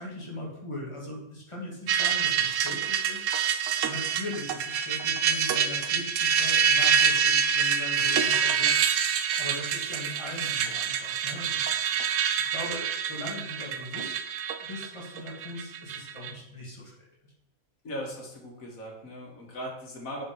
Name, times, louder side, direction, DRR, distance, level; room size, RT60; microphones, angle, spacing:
voice 1, 0.0-3.4 3.8-9.1 9.4-11.7 12.4-14.2 14.6-16.9 17.2-17.3, left 1 dB, 20° left, -3 dB, 2.2 m, -39 dB
sound 1, 1.9-16.3, right 7 dB, 70° right, 1.0 m, -26 dB
voice 2, 17.8-20.2, equal, 75° left, 0 dB, 2.2 m, -38 dB
7.3 x 5.3 x 4.9 m, 0.82 s
omnidirectional pair, 1.5 m